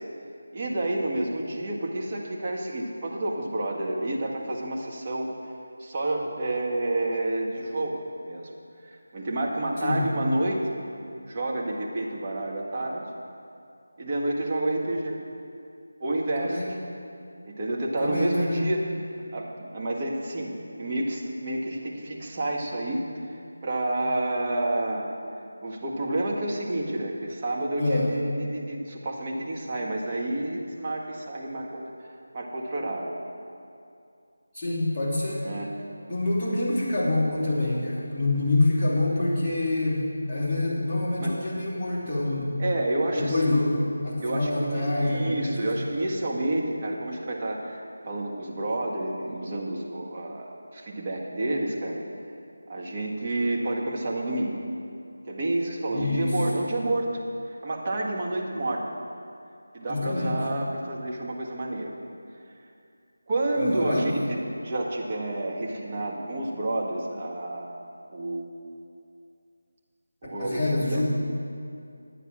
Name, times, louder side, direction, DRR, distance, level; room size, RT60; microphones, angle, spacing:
voice 1, 0.5-5.3 5.8-8.5 8.8-10.7 11.3-13.1 14.0-15.2 16.0-16.6 17.4-18.9 19.2-25.1 25.6-31.9 32.3-33.1 35.4-35.7 41.2-41.4 42.6-43.5 44.2-52.0 52.7-54.6 55.3-57.1 57.6-58.8 59.7-61.9 63.3-64.4 64.6-67.8 68.1-68.5 70.2-71.0, right 1 dB, 30° right, -2 dB, 1.5 m, -29 dB
voice 2, 16.4-16.7 18.0-18.6 27.8-28.1 34.5-35.5 36.1-42.6 43.1-45.7 55.9-56.4 59.9-60.3 63.5-64.1 70.4-71.0, left 2 dB, 10° left, -14 dB, 3.2 m, -26 dB
11.0 x 9.0 x 6.2 m, 2.5 s
figure-of-eight pair, 165°, 0 cm